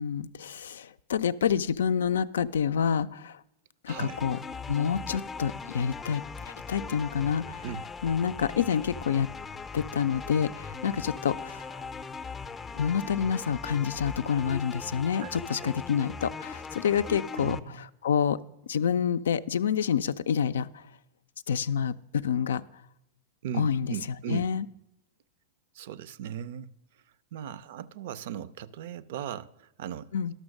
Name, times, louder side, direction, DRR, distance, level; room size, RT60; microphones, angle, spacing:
voice 1, 0.0-3.4 3.8-4.4 4.7-7.6 8.0-9.3 9.7-11.9 12.7-18.4 18.7-20.8 21.5-22.6 23.6-23.9 24.3-24.7 30.1-30.3, left 7 dB, 80° left, 0.4 m, -28 dB
sound 1, 3.9-17.6, left 5 dB, 20° left, 0.5 m, -40 dB
voice 2, 3.9-4.3 7.6-7.8 15.2-15.8 17.4-17.8 23.4-24.5 25.7-26.7 27.3-30.3, right 10 dB, 65° right, 0.4 m, -38 dB
12.0 x 6.2 x 6.4 m
hypercardioid pair, 110°, 0 cm